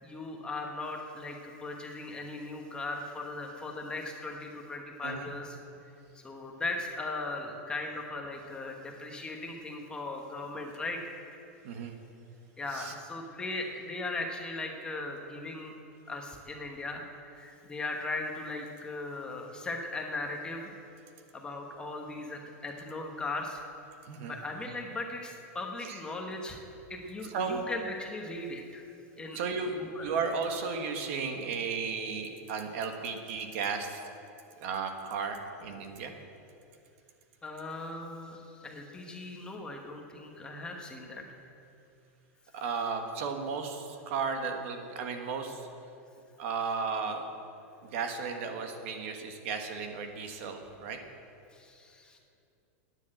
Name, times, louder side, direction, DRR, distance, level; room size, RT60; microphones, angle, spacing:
voice 1, 0.0-5.6 6.2-11.0 11.3-11.4 12.6-15.7 16.1-20.7 21.3-23.6 24.2-26.6 26.9-28.8 29.2-29.4 29.8-30.1 37.4-41.2 51.5-52.2, left 2 dB, 10° left, 1 dB, 1.1 m, -38 dB
voice 2, 24.0-24.4 25.9-26.0 27.2-27.6 29.3-29.7 30.0-34.0 34.6-36.1 42.5-45.7 46.4-47.2 47.8-51.0, right 5 dB, 55° right, 5 dB, 1.4 m, -34 dB
12.0 x 9.9 x 7.7 m, 2.7 s
supercardioid pair, 160°, 8 cm